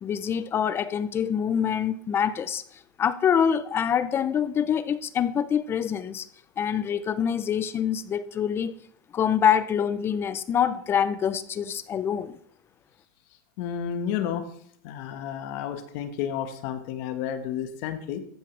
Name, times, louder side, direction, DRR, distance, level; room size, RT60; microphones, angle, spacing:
voice 1, 0.0-2.6 3.0-6.3 6.6-8.8 9.1-12.3, left 8 dB, 20° left, 15 dB, 0.6 m, -25 dB
voice 2, 13.6-14.5 14.8-18.2, left 9 dB, 55° left, 8 dB, 1.4 m, -31 dB
14.0 x 10.0 x 3.3 m, 0.64 s
supercardioid pair, 140°, 11 cm